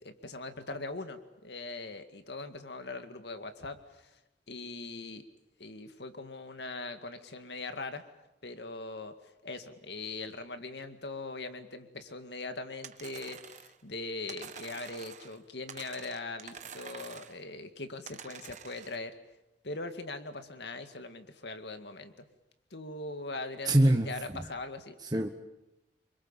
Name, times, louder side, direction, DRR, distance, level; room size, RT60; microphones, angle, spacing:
voice 1, 0.0-4.2 4.5-5.2 5.6-8.0 8.4-9.1 9.4-19.2 19.6-22.3 22.7-25.0, left 3 dB, 70° left, 8 dB, 2.1 m, -41 dB
sound 1, 12.8-13.8 14.3-15.4 15.7-17.4 18.1-19.0, right 7 dB, 45° right, 1.2 m, -47 dB
voice 2, 23.6-24.5 25.0-25.3, right 1 dB, 25° right, 4 dB, 1.1 m, -25 dB
26.5 x 24.0 x 7.4 m, 0.95 s
head